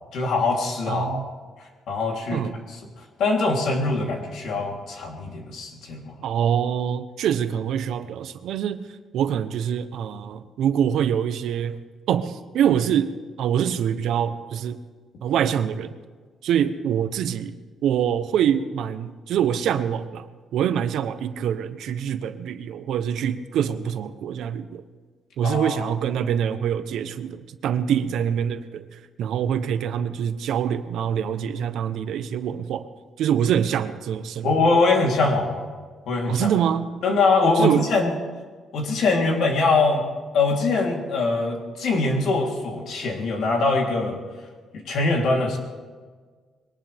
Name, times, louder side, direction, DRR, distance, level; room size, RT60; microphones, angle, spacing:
voice 1, 0.1-1.2 1.9-2.4 3.2-6.1 25.4-25.8 34.4-35.6 36.1-36.5 37.0-38.1 38.7-40.0 40.3-44.2 44.9-45.6, left 3 dB, 70° left, 0 dB, 3.4 m, -22 dB
voice 2, 0.9-1.3 2.3-2.6 6.2-8.8 9.1-11.8 12.1-13.1 13.4-14.8 15.2-15.9 16.4-17.6 17.8-20.3 20.5-24.8 25.4-28.8 29.2-32.9 33.2-34.5 36.3-36.9 37.5-37.9, right 9 dB, 80° right, 11 dB, 0.9 m, -25 dB
22.0 x 18.5 x 3.5 m, 1.5 s
cardioid pair, 150°, 0 cm